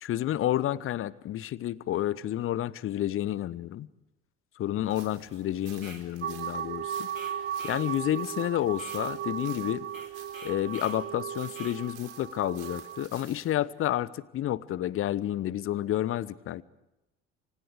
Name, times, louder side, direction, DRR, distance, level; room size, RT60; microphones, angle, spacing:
voice 1, 0.0-3.9 4.6-7.1 7.6-9.9 10.4-16.6, left 12 dB, 35° left, 21 dB, 0.9 m, -30 dB
sound 1, 4.8-13.5, right 11 dB, 65° right, 3.8 m, -52 dB
sound 2, 5.7-6.1 7.1-7.9 8.7-9.1 9.9-11.0 11.5-11.8, right 2 dB, 90° right, 2.1 m, -48 dB
sound 3, 6.2-13.1, right 9 dB, 30° right, 0.8 m, -36 dB
28.5 x 25.0 x 5.0 m, 0.92 s
figure-of-eight pair, 65°, 38 cm